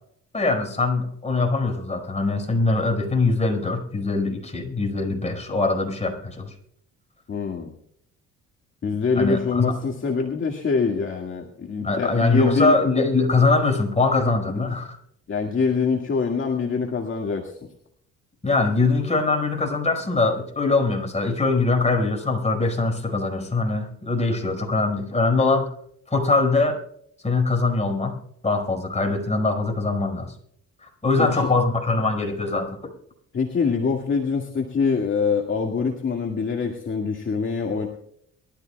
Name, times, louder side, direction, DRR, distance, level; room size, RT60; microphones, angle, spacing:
voice 1, 0.3-6.5 9.2-9.8 11.8-15.0 18.4-25.7 26.1-26.8 27.2-28.2 28.4-30.3 31.0-32.8, left 3 dB, 20° left, 2 dB, 5.1 m, -22 dB
voice 2, 7.3-7.7 8.8-12.8 14.6-14.7 15.3-17.6 31.2-31.5 33.3-37.9, left 5 dB, 40° left, 1 dB, 2.0 m, -24 dB
23.0 x 13.5 x 2.3 m, 0.67 s
cardioid pair, 90°, 30 cm